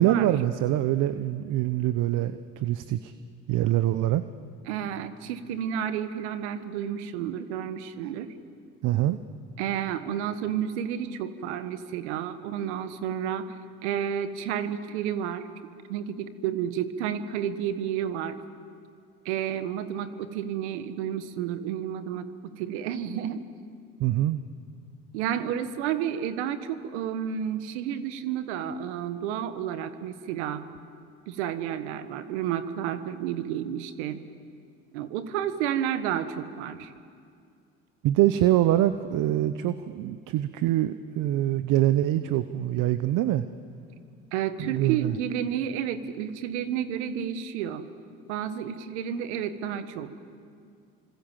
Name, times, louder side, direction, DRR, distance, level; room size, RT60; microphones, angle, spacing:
voice 1, 0.0-3.1 3.5-4.2 8.8-9.2 24.0-24.4 38.0-43.4 44.6-45.2, right 13 dB, 65° right, 12 dB, 0.9 m, -24 dB
voice 2, 4.7-8.3 9.6-13.5 13.8-15.5 15.9-18.4 19.2-22.3 22.6-23.4 25.1-30.7 31.3-34.2 34.9-36.9 44.3-47.9 48.3-50.1, right 9 dB, 85° right, 11 dB, 1.4 m, -31 dB
29.0 x 25.5 x 7.5 m, 2.3 s
hypercardioid pair, 70°, 33 cm